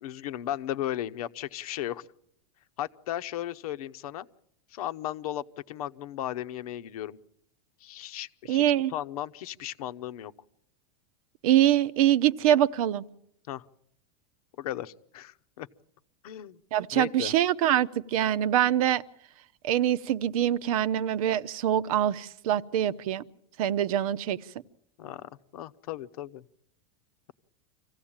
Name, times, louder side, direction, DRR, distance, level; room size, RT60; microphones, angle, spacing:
voice 1, 0.0-2.1 2.8-4.3 4.7-7.2 7.8-8.6 8.9-10.3 13.5-13.6 14.6-15.7 16.2-16.6 16.9-17.3 25.0-26.4, left 12 dB, 80° left, 12 dB, 1.0 m, -36 dB
voice 2, 8.5-8.9 11.4-13.0 16.7-19.0 19.6-23.2 23.6-24.4, right 11 dB, 70° right, 16 dB, 0.8 m, -24 dB
25.5 x 16.0 x 8.8 m, 0.73 s
supercardioid pair, 140°, 19 cm